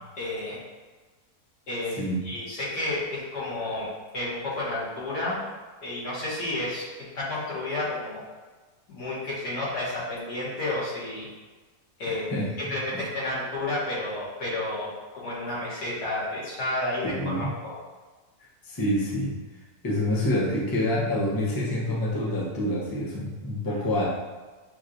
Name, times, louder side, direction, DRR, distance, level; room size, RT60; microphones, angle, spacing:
voice 1, 0.2-0.7 1.7-5.4 5.8-8.2 8.9-11.3 12.0-17.7, left 2 dB, 90° left, -8 dB, 2.2 m, -31 dB
voice 2, 12.1-13.0 17.0-17.5 18.6-19.3 19.8-24.0, left 1 dB, 20° left, -5 dB, 0.7 m, -27 dB
6.9 x 3.0 x 2.6 m, 1.3 s
omnidirectional pair, 1.7 m